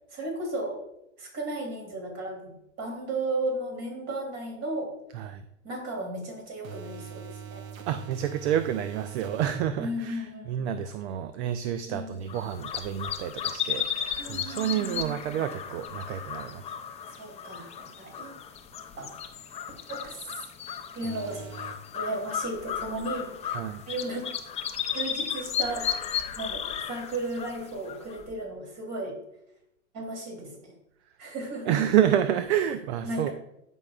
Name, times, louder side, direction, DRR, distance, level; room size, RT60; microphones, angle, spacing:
voice 1, 0.1-0.8 1.2-2.5 2.8-4.9 5.6-7.6 9.8-10.7 11.9-12.4 14.2-15.2 17.1-18.3 19.0-19.2 19.9-20.3 20.9-21.5 21.9-24.3 24.9-25.9 26.4-29.2 29.9-30.7 31.2-31.8 33.0-33.3, right 2 dB, 40° right, 1 dB, 3.1 m, -35 dB
sound 1, 6.6-9.7 21.0-21.7, right 7 dB, 85° right, 0.9 m, -42 dB
voice 2, 7.9-16.7 23.5-23.8 31.7-33.3, right 10 dB, 55° right, 11 dB, 0.6 m, -29 dB
sound 2, 12.3-28.3, left 8 dB, 15° left, 0.5 m, -35 dB
14.5 x 5.4 x 2.4 m, 0.80 s
hypercardioid pair, 110°, 40 cm